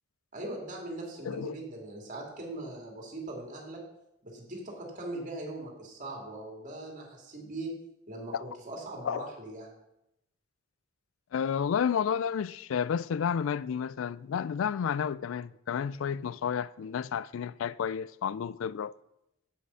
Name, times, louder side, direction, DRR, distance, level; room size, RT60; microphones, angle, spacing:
voice 1, 0.3-3.8 4.2-7.7 8.1-9.7, right 2 dB, 40° right, 2.5 m, -40 dB
voice 2, 11.3-18.9, left 7 dB, 70° left, 0.3 m, -31 dB
8.2 x 7.7 x 5.7 m
head